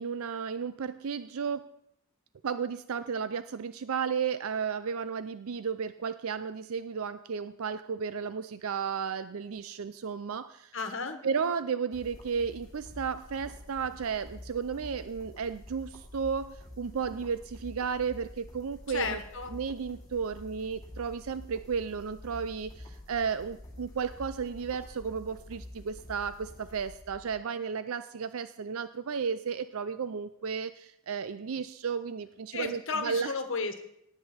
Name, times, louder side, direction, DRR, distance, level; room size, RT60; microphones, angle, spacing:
voice 1, 0.0-1.7 2.4-10.8 11.2-19.2 19.5-33.3, right 6 dB, 75° right, 13 dB, 0.5 m, -33 dB
voice 2, 10.7-11.2 18.9-19.5 32.5-33.8, left 4 dB, 60° left, 7 dB, 1.4 m, -34 dB
sound 1, 11.9-27.4, left 1 dB, 15° left, 3.0 m, -48 dB
18.0 x 8.3 x 4.4 m, 0.75 s
head